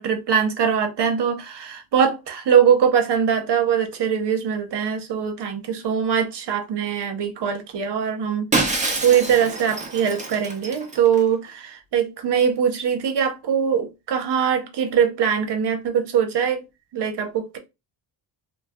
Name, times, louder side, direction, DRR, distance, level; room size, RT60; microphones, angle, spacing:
voice 1, 0.0-8.5 9.0-16.6 16.9-17.6, right 7 dB, 60° right, 0.8 m, -22 dB
Shatter, 8.5-11.2, right 3 dB, 15° right, 0.5 m, -26 dB
2.3 x 2.2 x 3.5 m
wide cardioid pair, 140°, 46 cm